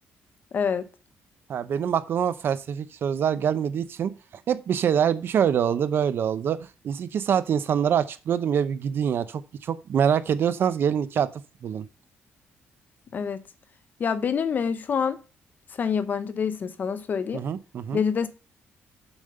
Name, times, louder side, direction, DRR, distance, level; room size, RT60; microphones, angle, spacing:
voice 1, 0.5-0.9 13.1-13.4 14.0-15.2 15.7-17.4 17.9-18.3, left 6 dB, 40° left, 0.7 m, -26 dB
voice 2, 1.5-4.1 4.5-11.3 11.6-11.8 17.3-18.0, right 8 dB, 55° right, 0.6 m, -25 dB
7.2 x 5.1 x 6.6 m
cardioid pair, 135°, 5 cm